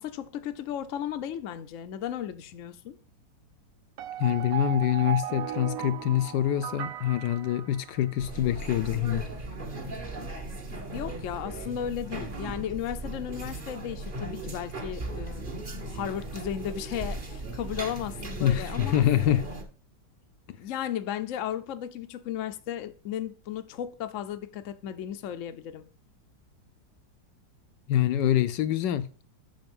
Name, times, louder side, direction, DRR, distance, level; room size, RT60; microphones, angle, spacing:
voice 1, 0.0-3.0 10.9-15.4 15.9-19.0 20.5-25.8, left 10 dB, 60° left, 0.8 m, -35 dB
sound 1, 4.0-8.3, right 10 dB, 70° right, 0.8 m, -36 dB
voice 2, 4.2-9.3 18.4-19.4 27.9-29.1, left 11 dB, 75° left, 1.2 m, -25 dB
sound 2, 8.2-19.6, right 2 dB, 30° right, 1.2 m, -37 dB
7.8 x 5.5 x 5.3 m
omnidirectional pair, 2.0 m